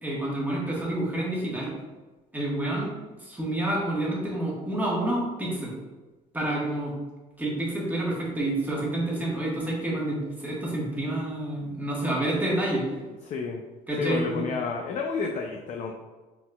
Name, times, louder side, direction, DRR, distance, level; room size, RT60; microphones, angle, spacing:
voice 1, 0.0-1.7 2.3-2.9 3.2-5.7 6.3-6.9 7.4-12.9 13.9-14.4, right 1 dB, 10° right, -5 dB, 1.3 m, -28 dB
voice 2, 13.3-13.6 14.0-15.9, left 4 dB, 45° left, 2 dB, 0.4 m, -30 dB
4.1 x 3.9 x 2.2 m, 1.2 s
cardioid pair, 110°, 17 cm